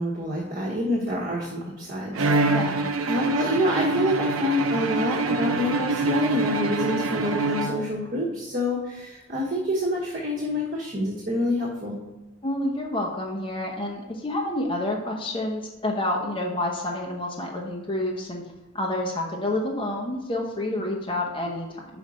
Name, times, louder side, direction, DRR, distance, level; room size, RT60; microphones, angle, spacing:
voice 1, 0.0-2.7 3.0-12.0, left 1 dB, 45° right, -4 dB, 1.2 m, -27 dB
Bowed string instrument, 2.1-8.2, right 2 dB, 85° right, 0.6 m, -25 dB
voice 2, 12.4-18.4 18.7-21.9, left 1 dB, 25° left, -1 dB, 0.9 m, -28 dB
5.5 x 5.1 x 6.3 m, 1.1 s
head